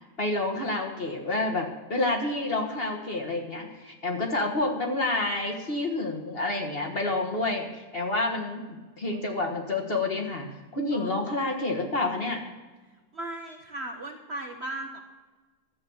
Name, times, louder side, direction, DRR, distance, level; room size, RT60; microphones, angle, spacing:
voice 1, 0.2-12.4, left 2 dB, 35° left, 1 dB, 1.5 m, -29 dB
voice 2, 13.1-15.0, right 1 dB, 45° right, 3 dB, 1.0 m, -37 dB
12.5 x 7.9 x 7.1 m, 1.2 s
omnidirectional pair, 1.9 m